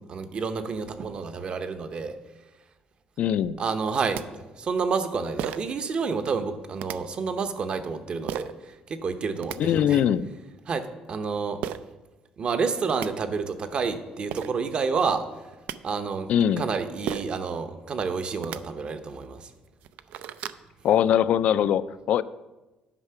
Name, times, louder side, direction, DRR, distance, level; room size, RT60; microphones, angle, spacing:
voice 1, 0.1-2.1 3.6-4.3 4.6-8.5 8.9-10.0 10.7-11.6 12.4-15.2 15.8-16.3 16.6-19.5, right 5 dB, 40° right, 9 dB, 0.8 m, -29 dB
voice 2, 3.2-3.6 9.6-10.3 16.3-16.7 20.8-22.2, left 10 dB, 65° left, 16 dB, 0.3 m, -22 dB
sound 1, 4.1-4.2 5.4-5.8 6.8-7.0 8.3-8.5 9.2-9.6 11.6-11.8 12.6-12.7 12.9-13.1 14.0-14.1 14.3-14.5 15.3-15.8 17.1-17.4 18.3-18.6 19.2-19.3 19.7-20.6, right 10 dB, 80° right, 0.4 m, -33 dB
9.7 x 5.7 x 5.7 m, 1.1 s
cardioid pair, 125°, 3 cm